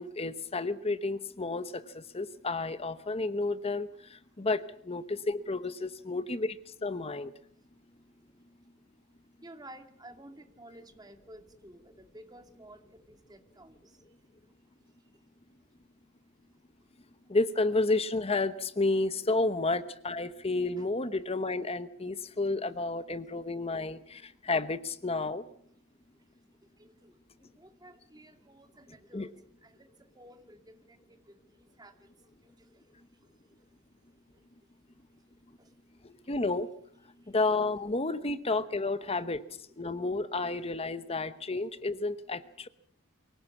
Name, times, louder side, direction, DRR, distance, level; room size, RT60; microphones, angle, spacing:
voice 1, 0.0-7.3 17.3-25.4 29.1-29.3 36.3-36.7 37.3-39.4 39.8-42.7, left 3 dB, 30° left, 13 dB, 1.0 m, -31 dB
voice 2, 9.4-14.0 15.1-15.4 20.8-20.9 22.0-22.2 23.3-23.4 23.8-23.9 26.1-32.9 33.2-36.3 37.1-37.4 38.7-39.1 39.5-39.6 39.9-40.1, right 1 dB, 20° right, 6 dB, 2.1 m, -55 dB
24.5 x 17.5 x 7.2 m, 0.66 s
head